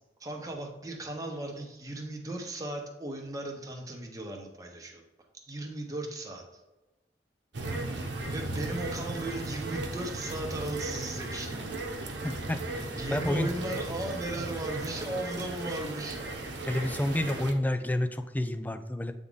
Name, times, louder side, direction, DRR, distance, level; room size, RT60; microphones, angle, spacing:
voice 1, 0.2-5.0 5.5-6.6 8.3-11.8 12.9-16.2, right 2 dB, 20° right, 1 dB, 1.0 m, -36 dB
sound 1, 7.5-17.5, right 2 dB, 85° right, 0.9 m, -36 dB
voice 2, 12.2-13.5 16.7-19.1, left 1 dB, 10° left, 9 dB, 0.3 m, -30 dB
8.4 x 3.6 x 4.0 m, 1.0 s
head